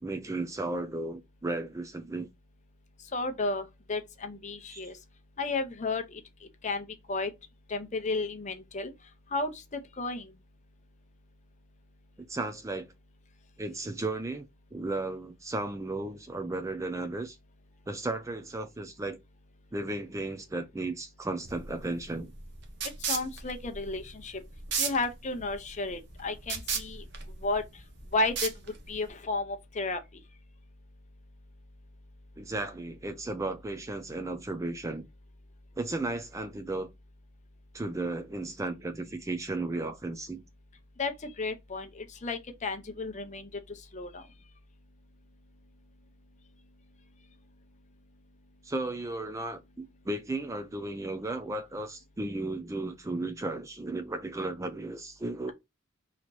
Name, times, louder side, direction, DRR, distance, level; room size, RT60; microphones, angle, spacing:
voice 1, 0.0-2.3 4.7-4.8 12.2-12.9 13.6-17.4 17.9-19.2 19.7-22.3 32.4-35.1 35.8-36.9 37.7-40.4 48.6-55.5, right 2 dB, 15° right, 0.4 m, -35 dB
voice 2, 3.0-5.0 5.4-7.3 7.7-10.4 22.8-24.4 24.8-27.9 28.1-30.2 41.0-44.3, left 3 dB, 35° left, 0.7 m, -33 dB
sound 1, 21.4-29.1, right 6 dB, 55° right, 0.9 m, -36 dB
4.0 x 2.9 x 4.5 m
head